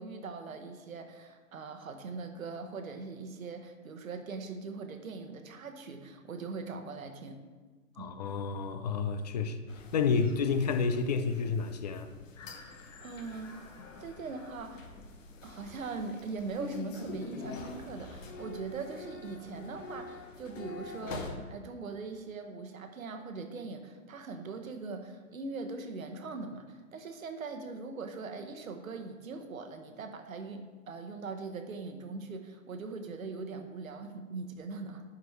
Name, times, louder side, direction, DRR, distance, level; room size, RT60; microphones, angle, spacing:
voice 1, 0.0-7.4 8.0-8.1 12.6-13.7 14.0-14.9 15.4-35.0, right 4 dB, 75° right, 1.1 m, -41 dB
voice 2, 8.0-9.6 9.9-12.1, left 5 dB, 30° left, 0.4 m, -30 dB
sound 1, 9.7-21.3, left 3 dB, 65° left, 1.1 m, -45 dB
10.5 x 5.1 x 3.2 m
hypercardioid pair, 125°, 42 cm